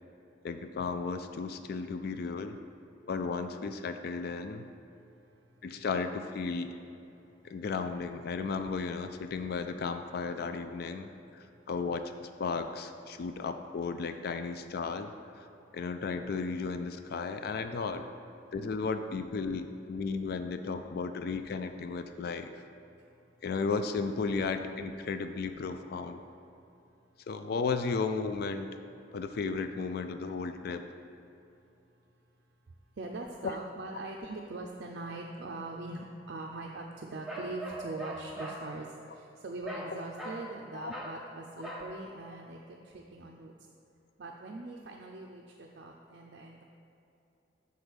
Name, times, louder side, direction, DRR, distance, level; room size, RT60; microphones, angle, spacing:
voice 1, 0.4-2.6 3.1-4.7 5.6-6.7 7.4-15.5 15.7-18.1 18.5-22.6 23.4-26.2 27.3-28.8 29.1-30.8 40.7-40.9, left 4 dB, 55° left, 8 dB, 0.3 m, -34 dB
voice 2, 33.0-43.5 44.2-46.6, right 2 dB, 60° right, 0 dB, 0.5 m, -42 dB
Bark, 37.3-38.6 39.7-39.9 40.2-40.5 40.9-41.2 41.6-41.9, right 1 dB, ahead, 0.9 m, -40 dB
6.7 x 5.1 x 6.3 m, 2.8 s
head